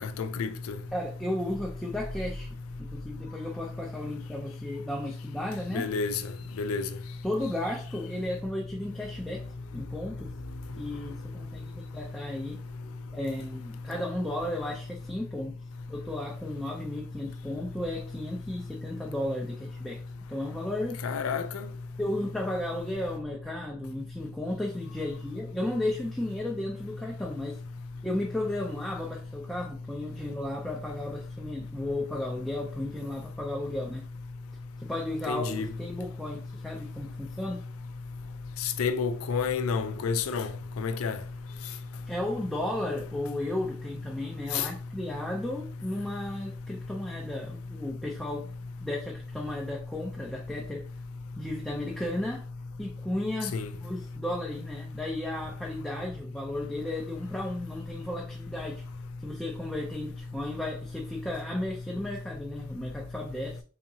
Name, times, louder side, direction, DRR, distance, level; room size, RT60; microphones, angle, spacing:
voice 1, 0.0-0.7 5.7-6.2 6.6-6.9 21.0-21.7 35.3-35.7 38.6-40.5 40.8-41.2 44.5-44.7 53.5-53.7, left 5 dB, 75° left, 0.4 m, -29 dB
voice 2, 0.9-2.5 2.8-5.9 7.2-9.4 9.7-10.3 10.8-12.6 13.1-15.6 15.9-20.0 20.3-21.0 22.0-27.6 28.0-34.0 34.8-37.6 42.1-48.5 48.8-50.8 51.4-52.4 52.8-58.8 59.2-63.6, left 1 dB, ahead, 0.4 m, -34 dB
sound 1, 1.5-4.0 4.4-4.5, equal, 25° right, 0.9 m, -44 dB
3.7 x 2.8 x 2.7 m
head